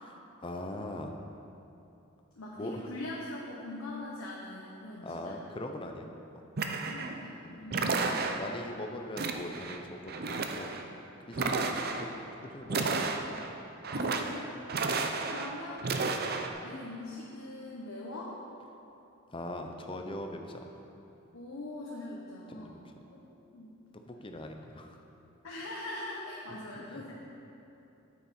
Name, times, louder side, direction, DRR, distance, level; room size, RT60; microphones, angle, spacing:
voice 1, 0.4-1.2 2.6-2.9 5.0-6.1 6.3-6.4 7.4-7.6 8.4-10.7 11.3-11.8 12.1-13.2 14.7-14.8 19.3-20.7 22.6-23.0 24.1-25.0 26.5-27.0, left 1 dB, 25° left, 4 dB, 0.7 m, -41 dB
voice 2, 2.4-5.4 6.8-8.0 11.4-11.7 13.9-14.5 15.3-16.0 16.6-18.4 21.3-23.8 25.4-27.1, left 2 dB, 85° left, -5 dB, 1.2 m, -42 dB
sound 1, 6.6-7.2 7.7-8.6 9.2-9.8 10.1-10.8 11.3-12.1 12.7-13.5 13.8-14.4 14.7-15.5 15.8-16.5, right 4 dB, 45° right, 0.6 m, -32 dB
9.4 x 8.6 x 4.3 m, 2.9 s
head